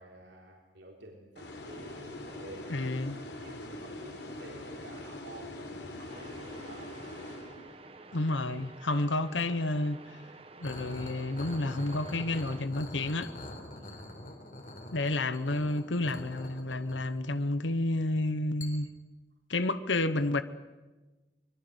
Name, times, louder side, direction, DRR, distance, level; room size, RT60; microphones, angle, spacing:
voice 1, 0.0-3.0 3.4-7.0 13.7-14.1, right 1 dB, 75° right, 3.9 m, -50 dB
sound 1, 1.4-8.0, left 1 dB, 70° left, 4.0 m, -43 dB
voice 2, 2.7-3.2 8.1-10.2 10.6-13.3 14.9-18.9 19.5-20.4, left 2 dB, 85° left, 1.1 m, -30 dB
sound 2, 6.1-12.7, right 3 dB, 30° right, 1.4 m, -51 dB
sound 3, 10.6-17.6 18.6-18.7, left 1 dB, 45° left, 3.9 m, -44 dB
24.5 x 21.5 x 8.1 m
head